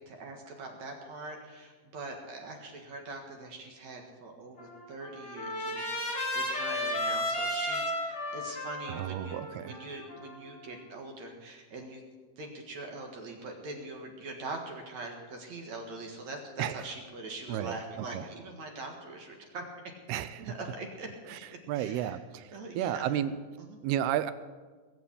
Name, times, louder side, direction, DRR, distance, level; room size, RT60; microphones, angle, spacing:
voice 1, 0.1-12.0 12.4-19.6 20.4-22.2 22.5-23.2 23.6-23.8, right 2 dB, 55° right, 2 dB, 2.5 m, -43 dB
Trumpet, 4.6-10.7, left 1 dB, 15° left, 4.5 m, -34 dB
voice 2, 8.9-9.8 16.6-16.9 17.5-18.3 20.1-20.4 21.3-21.4 21.7-23.3 23.8-24.3, right 11 dB, 85° right, 13 dB, 2.6 m, -32 dB
21.0 x 7.2 x 8.4 m, 1.4 s
omnidirectional pair, 4.6 m